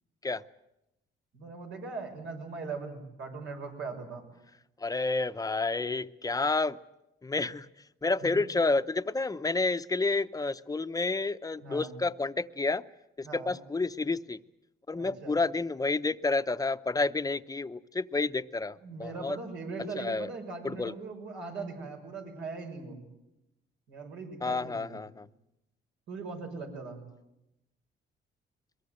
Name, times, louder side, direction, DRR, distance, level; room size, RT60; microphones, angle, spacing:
voice 1, 1.3-4.2 8.2-8.4 11.6-11.9 13.2-13.5 14.9-15.4 18.8-23.0 23.9-25.0 26.1-27.0, right 4 dB, 85° right, 2 dB, 6.3 m, -40 dB
voice 2, 4.8-6.8 7.2-7.7 8.0-12.8 13.2-14.4 14.9-19.4 20.0-20.3 20.6-20.9 24.4-25.3, left 3 dB, 20° left, 11 dB, 0.7 m, -30 dB
22.5 x 21.5 x 8.0 m, 0.91 s
cardioid pair, 90°, 20 cm